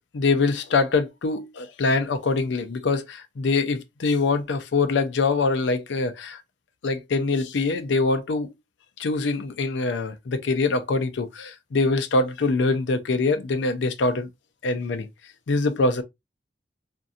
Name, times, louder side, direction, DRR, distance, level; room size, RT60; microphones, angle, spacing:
voice 1, 0.1-6.4 6.8-8.5 9.0-14.3 14.6-15.1 15.5-16.0, left 3 dB, 85° left, 0.5 m, -24 dB
2.7 x 2.5 x 2.3 m
head